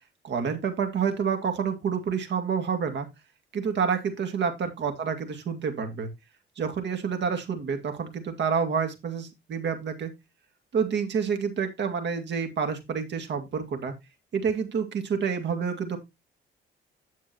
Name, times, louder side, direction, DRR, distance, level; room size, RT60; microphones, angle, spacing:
voice 1, 0.2-3.1 3.5-6.1 6.6-10.1 10.7-13.9 14.3-16.0, right 6 dB, 65° right, 6 dB, 2.1 m, -28 dB
9.8 x 7.2 x 2.9 m, 0.22 s
cardioid pair, 90°, 20 cm